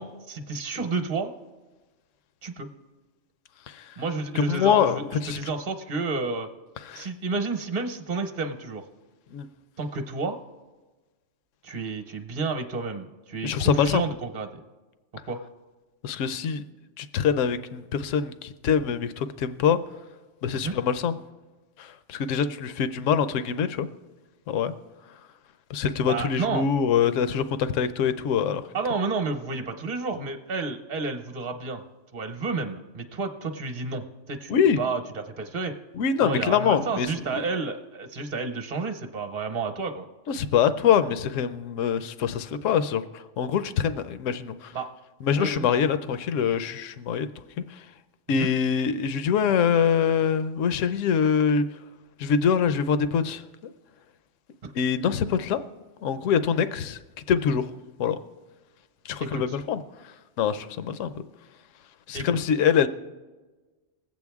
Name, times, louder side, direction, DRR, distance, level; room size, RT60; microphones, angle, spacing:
voice 1, 0.0-1.4 2.4-2.7 4.0-6.5 6.9-8.8 9.8-10.4 11.6-14.6 15.2-15.4 20.5-20.7 26.0-26.7 28.7-31.8 32.1-35.7 36.2-40.1 44.7-44.9 45.4-45.7 48.3-48.5 54.6-54.7 59.2-59.6 62.1-62.3, right 4 dB, 40° right, 6 dB, 1.0 m, -31 dB
voice 2, 4.3-5.4 6.8-7.1 9.3-9.5 13.4-14.0 16.0-16.6 17.0-19.8 20.4-21.1 21.8-23.9 24.5-24.7 25.7-28.6 34.5-34.8 35.9-37.4 40.3-44.7 45.2-47.3 47.7-47.8 48.3-51.7 52.2-53.7 54.7-55.6 56.0-57.0 57.3-57.7 58.0-58.2 59.0-59.8 60.4-61.1 62.1-62.9, left 7 dB, 80° left, 12 dB, 1.0 m, -24 dB
20.5 x 8.3 x 3.5 m, 1.3 s
omnidirectional pair, 1.3 m